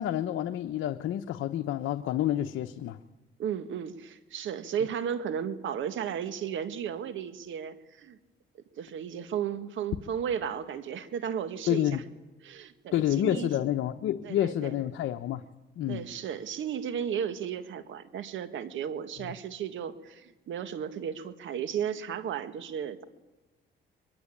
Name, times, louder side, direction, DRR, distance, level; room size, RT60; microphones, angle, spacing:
voice 1, 0.0-3.0 11.7-12.0 12.9-15.4 15.8-16.0, left 12 dB, 80° left, 6 dB, 1.1 m, -29 dB
voice 2, 3.4-8.2 8.7-12.0 12.4-13.5 14.2-14.8 15.9-23.0, right 8 dB, 75° right, 11 dB, 1.9 m, -34 dB
23.5 x 23.5 x 8.7 m, 1.1 s
cardioid pair, 90°, 20 cm